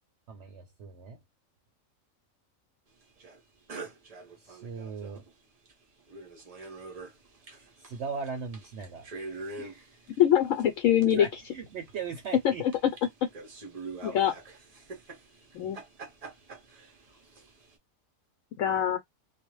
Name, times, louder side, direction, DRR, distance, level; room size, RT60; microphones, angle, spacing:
voice 1, 0.3-1.2 4.4-5.2 7.9-10.0 11.0-12.6 14.1-14.3, right 5 dB, 65° right, 0.8 m, -39 dB
sound 1, 3.2-3.4 3.7-5.3 5.7-5.8 6.0-17.7, right 3 dB, 40° right, 0.5 m, -45 dB
voice 2, 10.2-11.3 12.4-12.9 14.0-14.3 15.5-15.8 18.6-19.0, left 10 dB, 75° left, 0.9 m, -24 dB
2.4 x 2.1 x 3.0 m
omnidirectional pair, 1.4 m